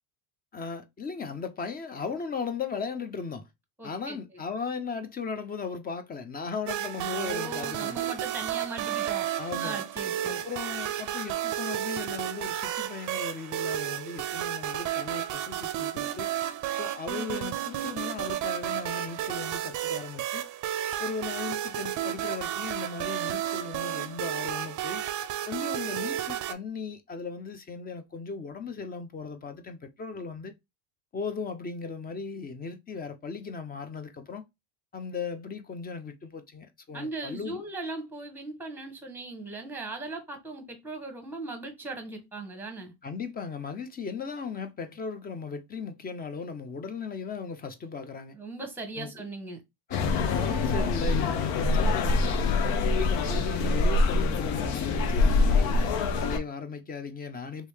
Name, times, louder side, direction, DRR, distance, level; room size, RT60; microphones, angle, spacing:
voice 1, 0.5-3.5 3.8-8.1 9.4-9.8 10.3-16.3 16.8-20.4 21.0-25.0 25.5-30.5 31.1-34.4 34.9-37.6 43.0-48.4 48.9-49.2 49.9-52.4 52.8-55.8 56.1-57.7, left 5 dB, 20° left, 0.4 m, -37 dB
voice 2, 3.8-4.2 7.1-9.3 9.6-10.4 36.9-42.9 48.3-49.6, right 2 dB, 5° right, 0.9 m, -38 dB
sound 1, 6.7-26.5, right 11 dB, 40° right, 0.5 m, -32 dB
sound 2, 49.9-56.4, left 3 dB, 85° left, 0.8 m, -25 dB
3.0 x 2.7 x 3.3 m
supercardioid pair, 110°, 48 cm